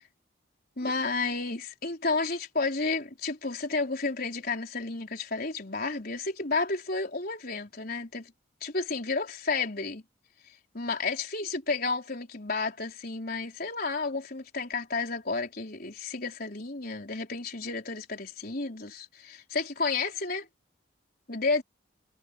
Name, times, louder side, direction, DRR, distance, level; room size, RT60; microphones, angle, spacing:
voice 1, 0.8-8.3 8.6-10.0 10.7-20.5 21.3-21.6, left 3 dB, 50° left, 4.5 m, -31 dB
head